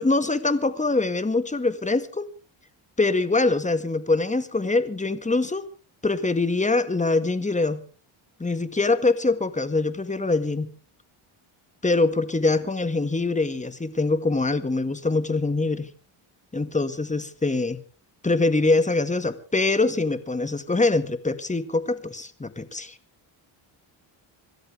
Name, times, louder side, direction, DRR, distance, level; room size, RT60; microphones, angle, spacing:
voice 1, 0.0-2.3 3.0-5.6 6.0-7.8 8.4-10.7 11.8-15.9 16.5-17.8 18.2-23.0, left 3 dB, 15° left, 12 dB, 1.8 m, -24 dB
26.5 x 13.0 x 3.5 m, 0.36 s
cardioid pair, 95°, 49 cm